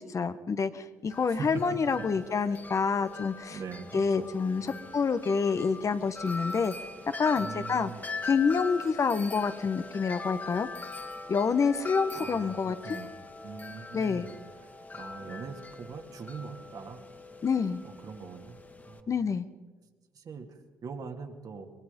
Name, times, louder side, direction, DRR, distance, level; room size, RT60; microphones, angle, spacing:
voice 1, 0.0-3.6 3.9-6.7 7.2-7.9 8.2-10.7 11.3-13.0 13.9-14.3 17.4-17.8 19.1-19.5, left 5 dB, 45° left, 11 dB, 1.2 m, -27 dB
Wind chime, 1.1-19.0, left 3 dB, 20° left, 2.1 m, -42 dB
voice 2, 3.5-4.3 4.6-4.8 7.4-8.1 12.1-13.1 13.4-17.0 17.8-18.6 18.9-19.4 20.1-21.7, right 5 dB, 55° right, 4 dB, 2.6 m, -42 dB
23.5 x 21.5 x 5.4 m, 1.3 s
hypercardioid pair, 55°, 7 cm